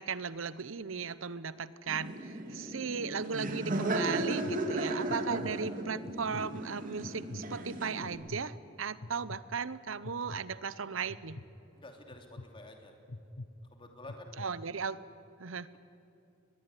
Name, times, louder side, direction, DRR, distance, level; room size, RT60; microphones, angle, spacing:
voice 1, 0.0-11.4 14.4-15.0 15.4-15.7, right 5 dB, 80° right, 16 dB, 0.9 m, -37 dB
Laughter, 1.9-8.2, right 1 dB, 45° right, 2.6 m, -35 dB
sound 1, 3.2-3.5 4.1-4.6 5.1-5.5 6.0-6.5 7.0-7.5 8.0-8.4 9.0-9.4 10.0-10.4 11.1-11.4 12.1-12.5 13.1-13.5 14.0-14.5, left 2 dB, 80° left, 1.1 m, -44 dB
voice 2, 11.7-12.9 13.7-14.3, left 2 dB, 25° left, 3 dB, 3.0 m, -50 dB
23.5 x 21.0 x 9.9 m, 2.7 s
head